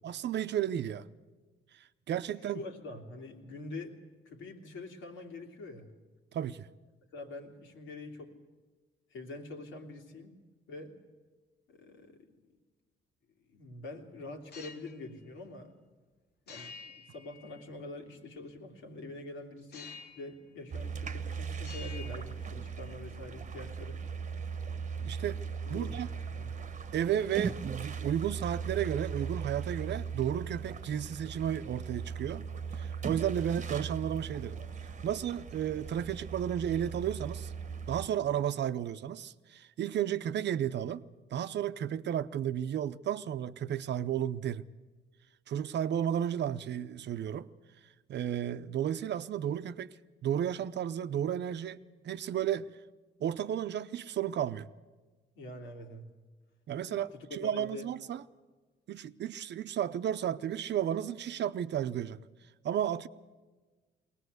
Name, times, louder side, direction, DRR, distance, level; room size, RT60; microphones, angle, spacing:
voice 1, 0.0-1.0 2.1-2.6 6.3-6.7 25.0-25.4 25.7-26.1 26.9-32.4 32.7-34.6 35.0-37.5 37.9-41.0 41.3-44.7 45.5-47.5 48.1-49.9 50.2-52.7 53.2-54.7 56.7-58.2 58.9-62.2 62.6-63.1, right 10 dB, 60° right, 0.7 m, -33 dB
voice 2, 2.4-4.0 4.2-5.9 7.1-8.3 9.1-10.3 10.7-11.0 11.7-12.3 13.5-15.7 16.5-24.0 25.6-26.0 26.3-26.5 55.4-56.1 56.8-57.9, left 2 dB, 80° left, 2.9 m, -45 dB
sound 1, 14.4-15.0 16.5-17.9 19.7-20.4 20.7-21.3 21.6-22.9, left 5 dB, 55° left, 1.5 m, -50 dB
sound 2, 20.7-38.1, right 6 dB, 40° right, 1.0 m, -39 dB
21.0 x 18.5 x 8.0 m
cardioid pair, 90°, 20 cm